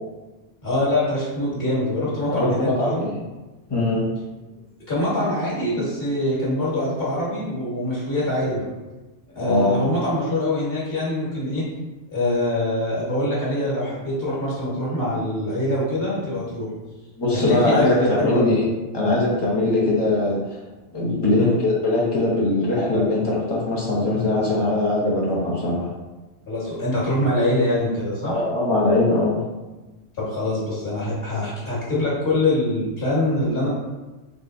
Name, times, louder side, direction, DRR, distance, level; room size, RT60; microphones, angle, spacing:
voice 1, 0.6-3.1 4.9-8.6 9.3-11.7 12.1-16.7 17.3-18.6 21.3-21.5 26.5-28.4 30.2-33.7, left 1 dB, 50° left, -7 dB, 1.7 m, -24 dB
voice 2, 2.3-3.1 3.7-4.0 9.4-9.8 17.2-18.6 18.9-20.4 20.9-25.9 28.3-29.4, left 2 dB, 20° left, -5 dB, 0.8 m, -21 dB
3.9 x 3.6 x 2.6 m, 1.1 s
omnidirectional pair, 1.3 m